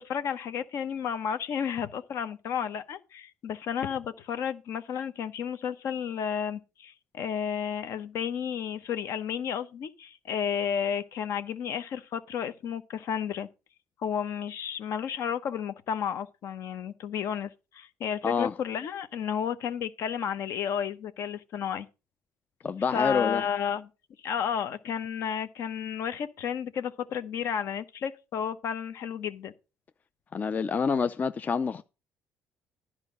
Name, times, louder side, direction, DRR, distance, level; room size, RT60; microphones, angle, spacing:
voice 1, 0.0-13.5 14.0-21.9 22.9-23.9 24.2-29.5, left 8 dB, 65° left, 0.9 m, -32 dB
voice 2, 18.2-18.5 22.6-23.4 30.3-31.8, left 5 dB, 35° left, 0.4 m, -27 dB
10.5 x 4.8 x 6.4 m
supercardioid pair, 85°, 5 cm